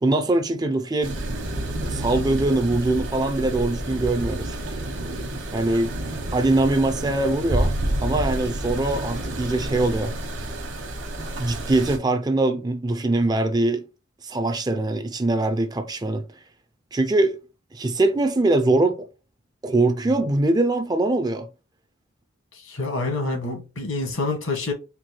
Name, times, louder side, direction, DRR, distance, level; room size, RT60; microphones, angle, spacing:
voice 1, 0.0-1.1 1.6-4.6 5.5-5.9 6.3-7.7 8.0-10.1 11.4-13.8 14.2-16.2 16.9-17.4 17.7-19.1 19.6-21.5, right 2 dB, 20° right, 0.4 m, -22 dB
sound 1, 1.0-12.0, right 1 dB, 65° right, 1.1 m, -29 dB
voice 2, 22.5-24.7, left 3 dB, 80° left, 1.6 m, -27 dB
4.4 x 2.2 x 4.3 m
head